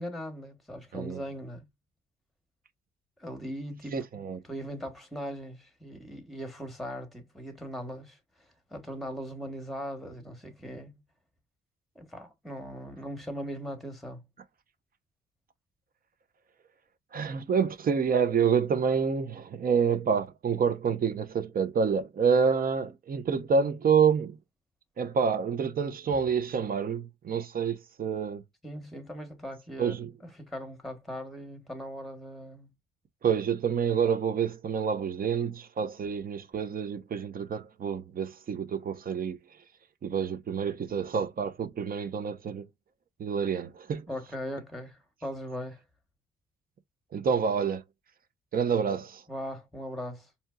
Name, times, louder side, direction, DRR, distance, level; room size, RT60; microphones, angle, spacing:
voice 1, 0.0-1.7 3.2-3.9 4.4-10.9 11.9-14.2 28.6-30.0 30.4-32.7 44.1-45.8 49.3-50.3, equal, ahead, 1.1 m, -39 dB
voice 2, 3.9-4.4 17.1-24.4 25.0-28.4 29.8-30.1 33.2-39.4 40.0-42.6 43.2-44.1 47.1-47.8 48.5-49.2, right 6 dB, 45° right, 0.7 m, -28 dB
4.4 x 2.8 x 2.2 m
cardioid pair, 90°, 20 cm